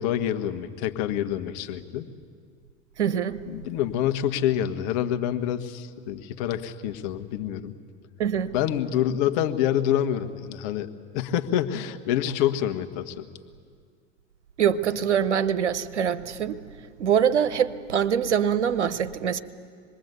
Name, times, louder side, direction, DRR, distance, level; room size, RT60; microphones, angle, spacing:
voice 1, 0.0-2.1 3.5-7.8 8.5-13.3, left 10 dB, 55° left, 1.6 m, -27 dB
voice 2, 3.0-3.4 8.2-8.5 14.6-16.6 17.0-19.4, right 8 dB, 90° right, 1.0 m, -24 dB
26.0 x 21.0 x 8.3 m
hypercardioid pair, 85°, 34 cm